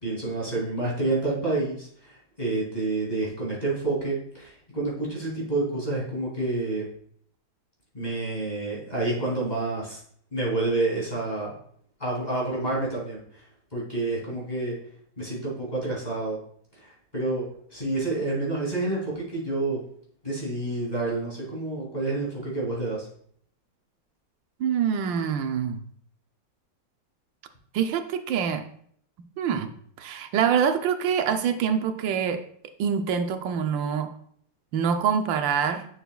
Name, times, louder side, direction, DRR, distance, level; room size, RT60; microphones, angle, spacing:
voice 1, 0.0-6.9 7.9-10.0 10.3-11.6 12.0-13.4 13.7-14.7 15.2-16.4 16.8-19.8 20.2-23.1, right 2 dB, 20° left, -5 dB, 2.8 m, -29 dB
voice 2, 24.6-25.8 27.7-28.6 29.4-29.7 30.0-32.4 32.8-34.1 34.7-35.9, right 7 dB, 85° right, 8 dB, 1.4 m, -25 dB
10.0 x 6.4 x 2.3 m, 0.63 s
omnidirectional pair, 2.0 m